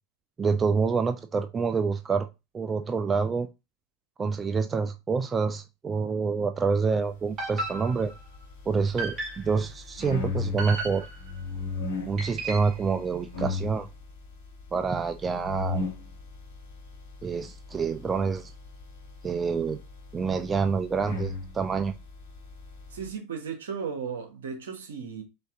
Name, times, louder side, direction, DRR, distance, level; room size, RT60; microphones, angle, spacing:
voice 1, 0.4-2.3 2.5-3.5 4.2-8.1 8.7-11.0 12.0-13.9 14.7-15.8 17.2-18.5 19.2-19.8 20.1-21.9, right 5 dB, 25° right, 0.5 m, -27 dB
sound 1, 7.4-8.3 9.0-9.6 10.6-11.4 12.2-12.8, right 2 dB, 40° right, 2.3 m, -35 dB
sound 2, 7.7-23.1, left 3 dB, 85° left, 1.7 m, -38 dB
voice 2, 22.9-25.2, right 6 dB, 80° right, 1.1 m, -35 dB
5.2 x 2.7 x 3.6 m
hypercardioid pair, 85°, 0 cm